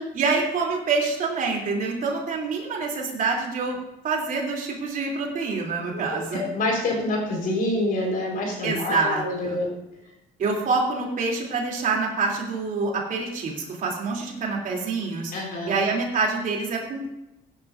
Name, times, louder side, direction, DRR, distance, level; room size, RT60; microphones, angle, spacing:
voice 1, 0.1-3.8 4.0-6.4 8.6-9.6 10.4-15.3 15.7-17.1, right 4 dB, 50° right, -1 dB, 3.2 m, -26 dB
voice 2, 6.3-9.7 15.3-15.7, left 2 dB, 55° left, 0 dB, 4.7 m, -26 dB
17.0 x 10.5 x 2.6 m, 0.90 s
cardioid pair, 110°, 17 cm